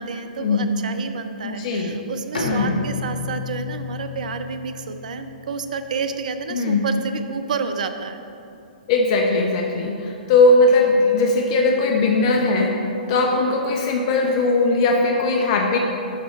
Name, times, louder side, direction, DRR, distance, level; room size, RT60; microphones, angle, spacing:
voice 1, 0.0-8.2 13.1-13.4, right 5 dB, 60° right, 8 dB, 0.5 m, -30 dB
voice 2, 1.4-2.0 2.4-2.8 6.5-6.8 8.9-12.7 13.1-15.8, left 3 dB, 40° left, 1 dB, 0.7 m, -19 dB
Bowed string instrument, 2.3-6.0, left 4 dB, 75° left, 1.2 m, -32 dB
7.5 x 5.5 x 4.3 m, 2.6 s
figure-of-eight pair, 115°, 5 cm